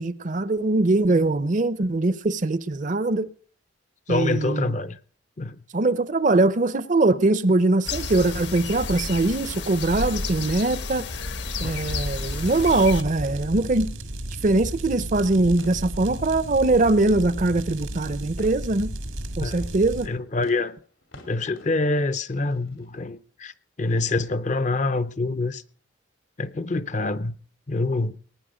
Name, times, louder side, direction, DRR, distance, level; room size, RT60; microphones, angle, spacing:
voice 1, 0.0-3.3 4.1-4.7 5.7-11.1 11.6-13.9 14.4-18.9 19.4-20.1, right 2 dB, 40° right, 0.6 m, -22 dB
voice 2, 4.1-5.0 5.4-5.6 19.4-19.7 20.1-20.8 21.3-23.5 23.8-25.6 26.4-27.4 27.7-28.2, left 2 dB, 40° left, 0.6 m, -26 dB
sound 1, 7.9-13.0, left 3 dB, 60° left, 1.1 m, -31 dB
sound 2, 12.3-20.1, right 1 dB, 85° right, 1.8 m, -34 dB
sound 3, 15.5-23.1, left 2 dB, 80° left, 2.8 m, -53 dB
19.5 x 9.4 x 5.0 m
head